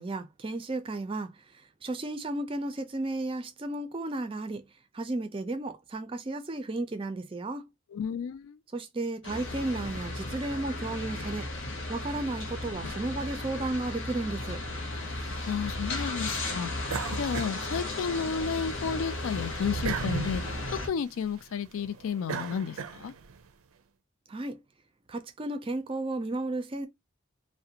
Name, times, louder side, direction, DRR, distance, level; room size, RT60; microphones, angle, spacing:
voice 1, 0.0-1.3 1.8-4.6 4.9-7.7 8.7-11.5 11.9-14.6 24.3-24.6 25.1-26.9, right 2 dB, 25° right, 0.4 m, -33 dB
voice 2, 7.9-8.6 15.4-16.7 17.1-20.4 20.8-23.1, left 6 dB, 80° left, 0.3 m, -32 dB
sound 1, 9.2-20.9, left 2 dB, 65° left, 0.8 m, -35 dB
sound 2, 16.9-18.4 18.8-23.4, right 5 dB, 90° right, 0.4 m, -37 dB
2.4 x 2.1 x 2.8 m
head